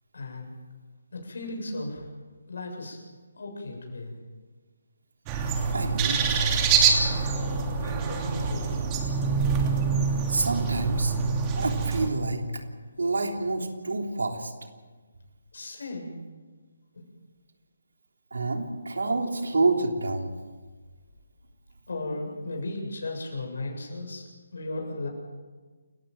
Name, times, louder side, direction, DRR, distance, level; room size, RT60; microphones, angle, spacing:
voice 1, 0.1-0.5 1.1-2.1 2.5-3.0 3.4-4.1 7.8-8.7 15.5-16.1 16.9-17.0 21.9-25.1, left 2 dB, 65° left, 2 dB, 7.5 m, -35 dB
sound 1, 5.3-12.1, right 5 dB, 20° right, 2.9 m, -25 dB
voice 2, 5.7-6.5 10.3-11.1 11.6-12.4 13.0-14.5 18.3-20.3, right 3 dB, 65° right, 3 dB, 3.3 m, -27 dB
29.0 x 15.0 x 7.8 m, 1.4 s
figure-of-eight pair, 145°, 0 cm